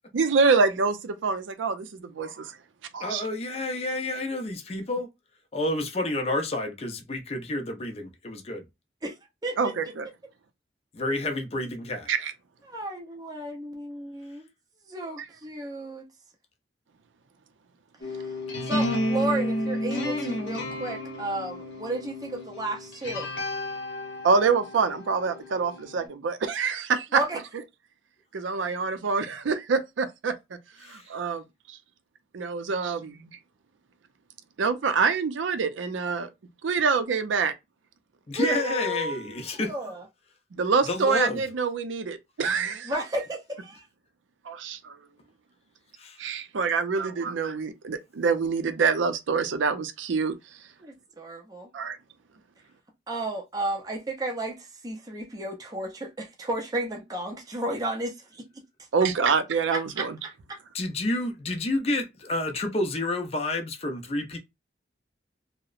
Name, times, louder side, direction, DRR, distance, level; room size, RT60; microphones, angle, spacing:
voice 1, 0.1-2.5 2.9-3.2 9.6-10.1 12.1-12.3 24.2-27.2 28.3-30.4 30.9-31.4 31.7-31.8 32.3-33.3 34.6-36.3 36.6-37.5 40.5-42.9 44.5-45.0 46.2-50.4 51.7-52.0 58.9-60.2, right 5 dB, 85° right, 0.5 m, -26 dB
voice 2, 3.0-5.1 5.5-8.6 10.9-12.1 30.8-31.1 38.3-39.7 40.8-41.4 46.0-46.2 60.7-64.4, left 2 dB, 35° left, 0.5 m, -29 dB
voice 3, 9.4-9.7 12.7-14.5 14.9-16.1 18.1-23.3 27.1-27.4 38.3-40.0 42.9-43.8 50.8-51.7 53.1-58.4 59.7-60.6, right 2 dB, 20° right, 0.5 m, -33 dB
sound 1, 18.0-26.1, left 1 dB, 70° left, 0.8 m, -32 dB
2.8 x 2.0 x 2.4 m
head